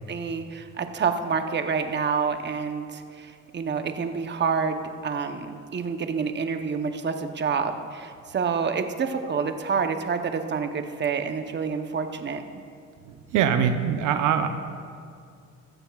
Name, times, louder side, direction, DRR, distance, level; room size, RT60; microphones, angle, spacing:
voice 1, 0.1-12.4, right 5 dB, 35° right, 7 dB, 0.8 m, -28 dB
voice 2, 13.1-14.5, right 8 dB, 85° right, 7 dB, 0.7 m, -23 dB
16.0 x 13.0 x 2.4 m, 2.3 s
cardioid pair, 90°, 30 cm